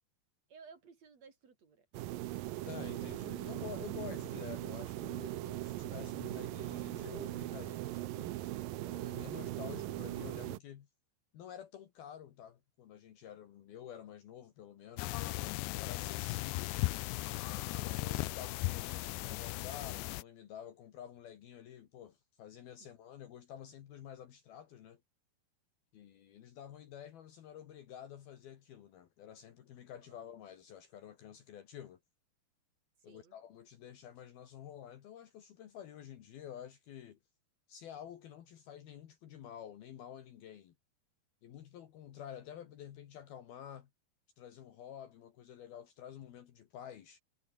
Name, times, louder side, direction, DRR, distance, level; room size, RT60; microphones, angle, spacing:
voice 1, 0.5-1.9 22.8-22.9 29.9-30.2 33.0-33.4, right 5 dB, 40° right, 4.2 m, -57 dB
sound 1, 1.9-10.6, right 16 dB, 75° right, 2.2 m, -40 dB
voice 2, 2.7-10.9 11.3-16.8 17.7-25.0 25.9-32.0 33.0-37.2 37.7-40.7 41.4-43.9 44.4-47.2, left 10 dB, 65° left, 3.5 m, -50 dB
sound 2, 15.0-20.2, left 19 dB, 80° left, 2.9 m, -37 dB
omnidirectional pair, 4.9 m